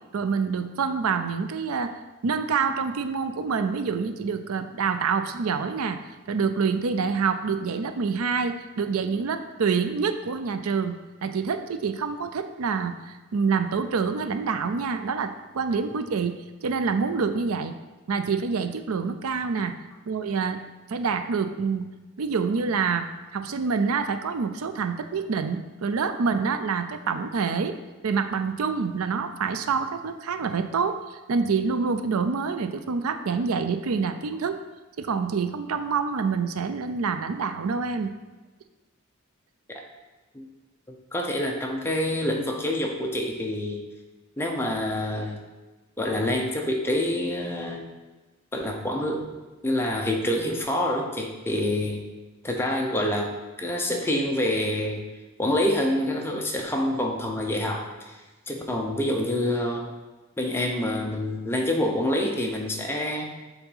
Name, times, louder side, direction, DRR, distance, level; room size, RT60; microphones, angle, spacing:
voice 1, 0.1-1.9 2.2-6.0 6.3-11.0 11.2-16.3 16.6-17.7 18.1-19.7 20.1-20.6 20.9-21.9 22.2-23.1 23.3-27.7 28.0-34.6 35.0-38.1, right 5 dB, 80° right, 9 dB, 0.5 m, -26 dB
voice 2, 40.9-43.8 44.4-45.4 46.0-47.9 48.5-49.3 49.6-52.1 52.4-55.1 55.4-58.2 58.5-59.9 60.4-63.3, left 1 dB, 10° left, 0 dB, 0.7 m, -27 dB
7.1 x 3.9 x 5.5 m, 1.2 s
head